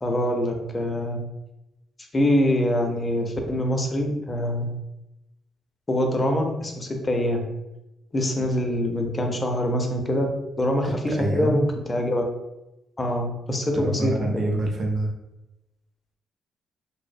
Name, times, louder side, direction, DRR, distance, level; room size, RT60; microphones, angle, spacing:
voice 1, 0.0-1.2 2.1-4.7 5.9-7.5 8.1-10.3 10.6-12.2 13.0-14.1, left 1 dB, 25° left, 3 dB, 0.4 m, -24 dB
voice 2, 10.8-11.7 13.7-15.1, right 1 dB, 50° right, 1 dB, 0.4 m, -26 dB
2.5 x 2.0 x 2.5 m, 0.94 s
cardioid pair, 90°, 0 cm